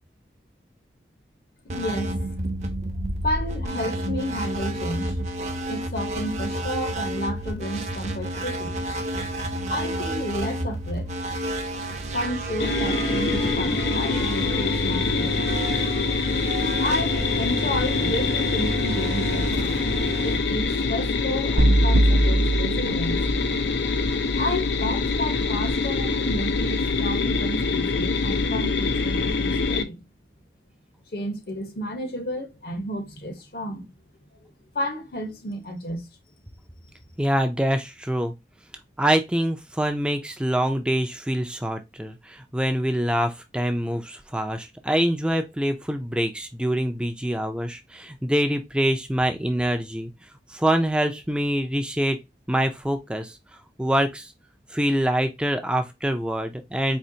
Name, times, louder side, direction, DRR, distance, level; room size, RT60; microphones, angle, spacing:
voice 1, 1.6-2.1 3.2-5.2 5.7-8.8 9.7-11.1 12.1-15.4 16.8-19.8 20.2-23.3 24.3-30.0 31.1-33.9 34.7-36.1, left 1 dB, 60° left, 1.0 m, -31 dB
sound 1, 1.7-21.2, right 1 dB, 40° right, 0.6 m, -30 dB
sound 2, 12.6-29.8, left 4 dB, 80° left, 0.5 m, -25 dB
sound 3, 21.6-23.7, right 1 dB, 85° right, 0.5 m, -21 dB
voice 2, 37.2-38.3 39.0-50.1 50.5-52.2 52.5-53.4 53.8-54.3 54.7-57.0, right 1 dB, 5° right, 0.4 m, -25 dB
4.4 x 2.9 x 2.7 m
head